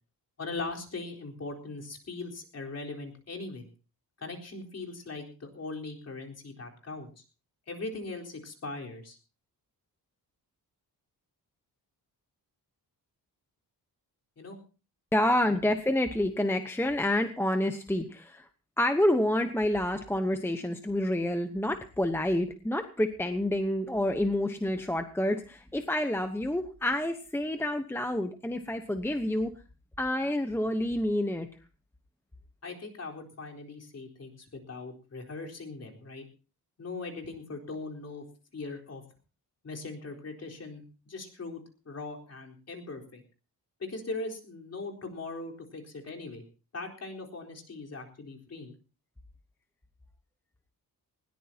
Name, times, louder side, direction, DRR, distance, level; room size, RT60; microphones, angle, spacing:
voice 1, 0.4-3.7 4.2-7.1 7.7-9.2 14.4-14.6 15.4-15.6 32.6-36.2 36.8-38.2 38.5-39.0 39.6-43.2 43.8-46.4 46.7-48.7, left 3 dB, 40° left, 1 dB, 4.1 m, -40 dB
voice 2, 15.1-18.5 18.8-29.5 30.0-31.5, left 1 dB, 5° left, 7 dB, 0.9 m, -28 dB
20.0 x 18.0 x 2.9 m, 0.35 s
wide cardioid pair, 175°, 39 cm